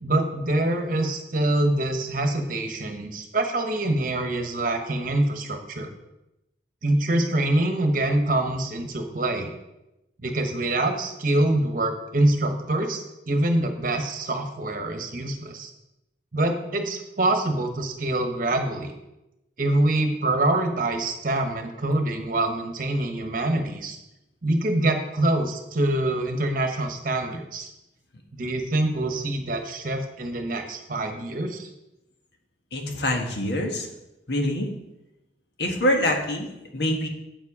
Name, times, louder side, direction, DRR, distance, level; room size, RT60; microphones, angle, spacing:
voice 1, 0.0-5.9 6.8-9.5 10.2-15.7 16.3-18.9 19.6-24.0 24.4-27.7 28.3-31.7, right 1 dB, 50° right, 5 dB, 1.1 m, -25 dB
voice 2, 32.7-33.9 34.3-34.7 35.6-37.1, left 1 dB, 65° left, 3 dB, 1.4 m, -25 dB
7.8 x 7.5 x 4.9 m, 0.92 s
head